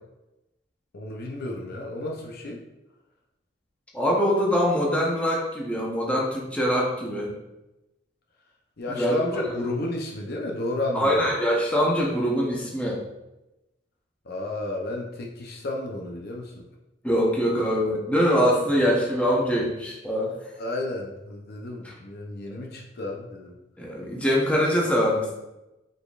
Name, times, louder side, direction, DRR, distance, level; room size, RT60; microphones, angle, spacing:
voice 1, 0.9-2.6 8.8-11.3 14.2-16.7 18.7-18.9 20.6-23.6, left 2 dB, 55° left, 0 dB, 0.7 m, -32 dB
voice 2, 3.9-7.3 8.9-9.2 10.9-13.0 17.0-20.3 21.8-21.9 22.5-22.6 23.8-25.3, equal, 5° left, -3 dB, 0.9 m, -23 dB
5.2 x 4.1 x 2.4 m, 0.97 s
head